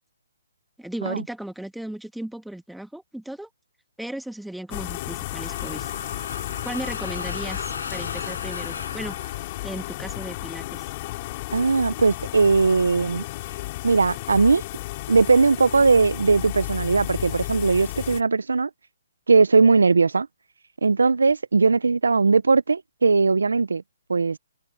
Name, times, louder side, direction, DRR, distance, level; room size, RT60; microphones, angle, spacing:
voice 1, 0.8-3.5 4.0-5.9 6.6-9.2 9.6-10.9, right 1 dB, ahead, 2.0 m, -36 dB
sound 1, 4.7-18.2, left 19 dB, 35° left, 3.8 m, -33 dB
sound 2, 5.2-10.2, left 4 dB, 85° left, 7.5 m, -37 dB
voice 2, 11.5-13.2 13.8-14.6 15.1-18.7 19.3-20.3 20.8-23.8 24.1-24.4, right 4 dB, 85° right, 0.6 m, -19 dB
hypercardioid pair, 145°, 0 cm